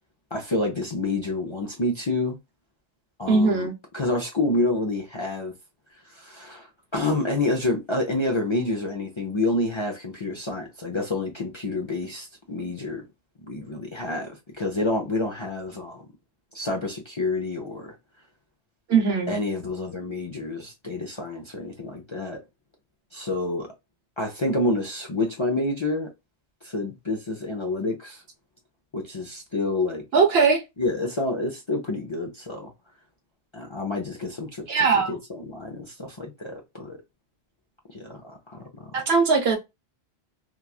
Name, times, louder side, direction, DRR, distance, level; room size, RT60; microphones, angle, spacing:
voice 1, 0.3-2.4 3.2-3.7 3.9-5.5 6.1-6.7 6.9-13.0 13.5-16.0 16.5-17.9 19.3-22.4 23.1-23.7 24.2-26.1 26.6-28.2 28.9-30.0 30.8-32.7 33.5-37.0 37.9-38.9, left 2 dB, 35° left, 0.5 m, -28 dB
voice 2, 3.3-3.7 18.9-19.3 30.1-30.6 34.7-35.1 38.9-39.6, right 4 dB, 65° right, 1.0 m, -20 dB
3.0 x 2.3 x 2.3 m
omnidirectional pair, 1.2 m